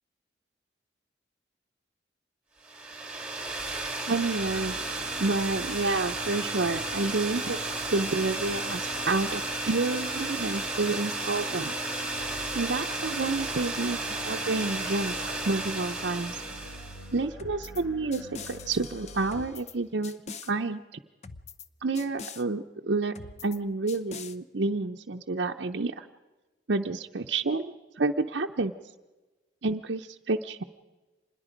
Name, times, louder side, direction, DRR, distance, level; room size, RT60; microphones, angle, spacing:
sound 1, 2.6-17.1, right 2 dB, 5° right, 2.5 m, -33 dB
voice 1, 4.1-7.6 7.9-11.7 12.5-15.1 15.5-16.4 17.1-20.2 20.5-21.0 21.8-23.1 23.4-26.1 26.7-28.7 29.6-30.6, right 3 dB, 65° right, 2 dB, 0.7 m, -29 dB
sound 2, 4.2-19.5, left 1 dB, 70° left, 3.4 m, -46 dB
sound 3, 17.4-17.8 18.1-19.7 20.0-20.5 21.2-21.7 22.0-22.4 23.2-23.6 23.9-24.4, left 5 dB, 35° left, 0.7 m, -43 dB
26.0 x 21.0 x 5.1 m, 1.2 s
head